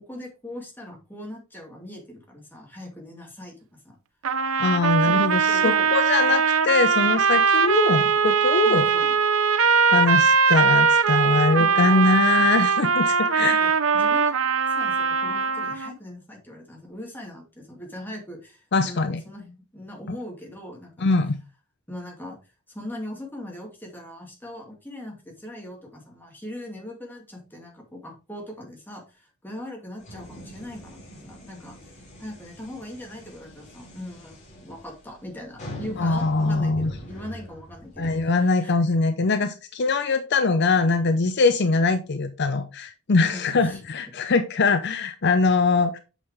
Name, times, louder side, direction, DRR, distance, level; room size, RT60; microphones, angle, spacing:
voice 1, 0.1-4.0 5.0-5.9 8.6-9.2 11.6-12.5 13.4-14.3 14.7-21.2 21.9-22.4 22.7-31.8 32.2-38.7 43.2-43.8, left 1 dB, 10° left, 0 dB, 2.4 m, -40 dB
sound 1, 4.2-15.9, right 6 dB, 70° right, 0.6 m, -21 dB
voice 2, 4.6-8.9 9.9-13.6 18.7-19.2 21.0-21.4 36.0-36.9 38.0-46.0, left 3 dB, 55° left, 9 dB, 0.6 m, -22 dB
sound 2, 30.0-38.3, equal, 35° left, 4.3 m, -43 dB
8.2 x 5.6 x 3.4 m, 0.31 s
head